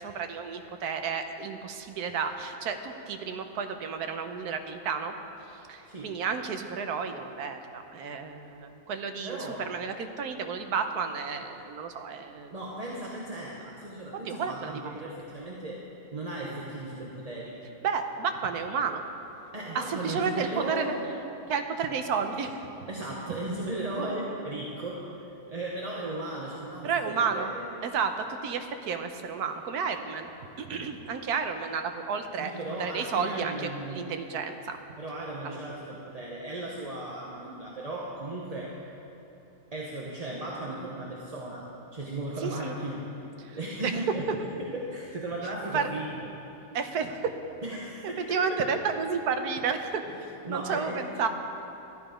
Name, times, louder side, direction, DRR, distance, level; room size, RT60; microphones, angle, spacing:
voice 1, 0.0-5.1 5.7-9.4 9.7-12.5 14.3-14.9 17.8-19.0 19.7-20.9 21.5-22.7 26.8-27.5 27.8-30.3 30.6-32.5 32.8-34.8 35.4-35.6 42.4-42.7 43.4-43.9 44.3-44.4 45.7-45.9 46.7-47.3 48.3-50.0 50.5-51.3, right 6 dB, 85° right, 7 dB, 1.3 m, -31 dB
voice 2, 5.9-6.2 9.2-9.6 12.5-15.8 16.1-17.6 19.5-21.0 22.9-25.1 25.5-27.6 32.4-34.1 35.0-38.8 39.7-43.0 43.5-44.3 44.6-46.2 47.6-48.8 50.1-50.2 50.4-51.1, right 1 dB, 30° right, -3 dB, 0.9 m, -36 dB
12.5 x 10.0 x 5.0 m, 3.0 s
omnidirectional pair, 1.6 m